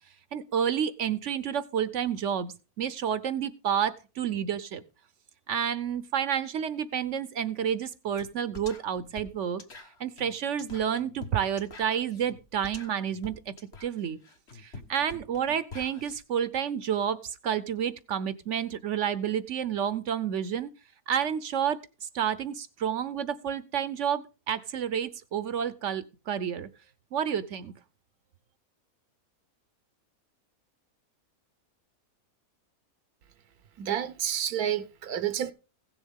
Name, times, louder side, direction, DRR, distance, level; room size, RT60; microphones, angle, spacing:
voice 1, 0.3-2.5 2.8-4.8 5.5-9.6 10.0-13.5 13.8-14.2 14.6-20.7 21.1-26.7 27.1-27.7, right 8 dB, 60° right, 0.9 m, -30 dB
sound 1, 8.2-8.3 8.5-16.2, left 3 dB, 45° left, 1.5 m, -46 dB
voice 2, 33.8-35.5, right 10 dB, 80° right, 1.3 m, -29 dB
16.5 x 7.1 x 3.6 m
omnidirectional pair, 1.6 m